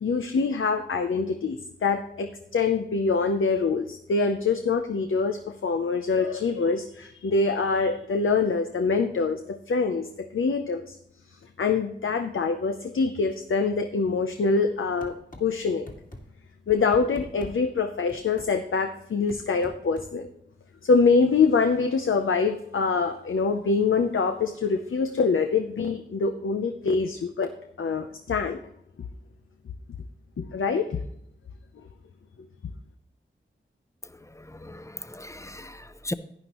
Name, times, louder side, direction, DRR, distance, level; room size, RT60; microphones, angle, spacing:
voice 1, 0.0-11.0 11.6-15.9 16.7-20.3 20.8-28.6 30.4-31.0, left 4 dB, 85° left, 0.6 m, -25 dB
sound 1, 15.0-15.4 15.9-16.2 16.7-17.5 18.1-18.5 19.3-20.1, left 1 dB, 40° left, 2.1 m, -41 dB
voice 2, 34.0-36.1, left 1 dB, 15° left, 0.6 m, -38 dB
11.5 x 9.7 x 3.0 m
wide cardioid pair, 50°, 20 cm